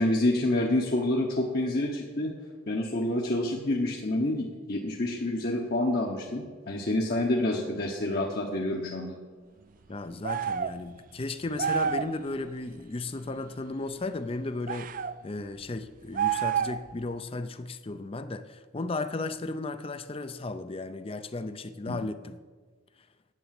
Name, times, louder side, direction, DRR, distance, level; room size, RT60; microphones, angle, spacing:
voice 1, 0.0-2.3 2.7-9.2 21.9-22.0, left 1 dB, 50° left, -1 dB, 1.0 m, -28 dB
voice 2, 9.9-14.9 15.2-22.4, left 2 dB, 25° left, 12 dB, 0.5 m, -35 dB
sound 1, 10.2-10.8 11.6-12.1 14.7-15.1 16.1-16.9, right 7 dB, 40° right, 0.3 m, -28 dB
9.9 x 9.1 x 7.6 m, 1.4 s
head